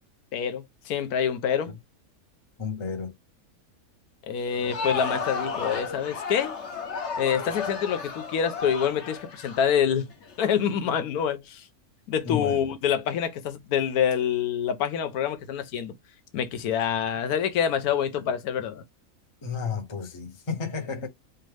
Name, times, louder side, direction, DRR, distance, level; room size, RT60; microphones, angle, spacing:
voice 1, 0.3-1.7 4.3-6.6 7.2-10.1 10.4-11.6 12.1-15.9 16.3-18.8, left 8 dB, 90° left, 1.2 m, -26 dB
voice 2, 2.6-3.1 12.2-12.6 19.4-21.1, left 5 dB, 30° left, 0.6 m, -32 dB
Crowd, 4.4-10.3, left 4 dB, 55° left, 1.1 m, -33 dB
4.6 x 2.3 x 3.3 m
omnidirectional pair, 1.6 m